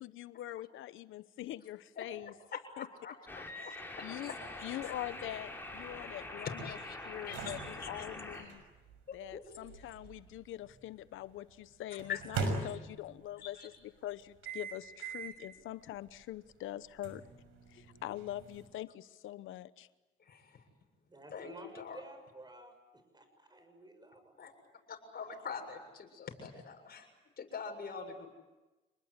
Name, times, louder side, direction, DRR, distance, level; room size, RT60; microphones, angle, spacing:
voice 1, 0.0-2.3 2.8-2.9 3.6-3.8 4.0-4.3 4.6-6.8 7.0-8.6 9.1-17.2 17.7-19.9, left 14 dB, 85° left, 15 dB, 1.0 m, -43 dB
voice 2, 2.0-4.4 4.7-4.9 6.4-7.0 7.3-8.1 9.1-9.4 12.1-12.2 13.4-13.7 20.2-20.6 21.3-22.0 24.4-24.5 24.9-27.1 27.4-28.3, left 6 dB, 50° left, 3 dB, 7.2 m, -44 dB
sound 1, 3.3-8.4, left 2 dB, 10° left, 7.7 m, -45 dB
sound 2, 4.8-10.9 12.0-13.3 14.4-15.5 16.0-16.1 17.0-18.7, right 4 dB, 90° right, 6.0 m, -42 dB
voice 3, 21.1-24.4, right 2 dB, 20° right, 8 dB, 6.8 m, -53 dB
28.5 x 20.5 x 9.8 m, 1.1 s
cardioid pair, 90°, 20 cm